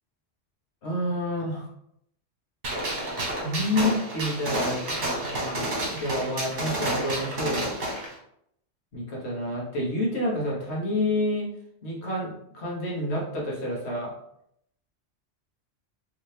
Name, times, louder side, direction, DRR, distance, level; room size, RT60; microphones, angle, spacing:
voice 1, 0.8-1.7 3.3-7.7 8.9-11.5 11.8-14.1, left 1 dB, 60° left, -3 dB, 1.3 m, -29 dB
Gunshot gunfire, 2.6-8.1, right 1 dB, 70° right, 1.4 m, -30 dB
3.2 x 2.8 x 3.2 m, 0.75 s
omnidirectional pair, 1.3 m